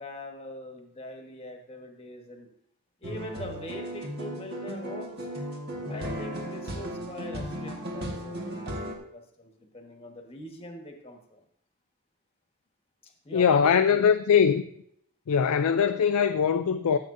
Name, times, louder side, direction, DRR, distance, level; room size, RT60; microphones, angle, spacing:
voice 1, 0.0-2.5 3.0-5.3 5.9-11.4 13.0-14.1, left 1 dB, 25° left, 1.4 m, -42 dB
sound 1, 3.0-9.0, equal, 45° right, 1.6 m, -35 dB
voice 2, 13.3-14.6 15.3-17.0, left 7 dB, 85° left, 0.4 m, -22 dB
14.5 x 7.8 x 2.6 m
head